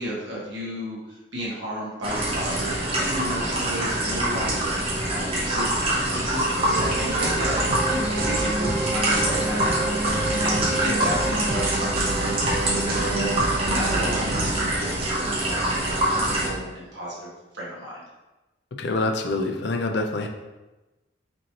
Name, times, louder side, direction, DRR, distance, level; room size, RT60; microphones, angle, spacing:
voice 1, 0.0-18.0, equal, 70° right, -6 dB, 1.4 m, -33 dB
sound 1, 2.0-16.5, right 1 dB, 30° right, 0.9 m, -25 dB
sound 2, 6.6-14.5, right 2 dB, 50° right, 0.6 m, -28 dB
voice 2, 18.8-20.3, left 2 dB, 60° left, 4 dB, 0.4 m, -26 dB
5.1 x 3.0 x 2.9 m, 1.1 s
head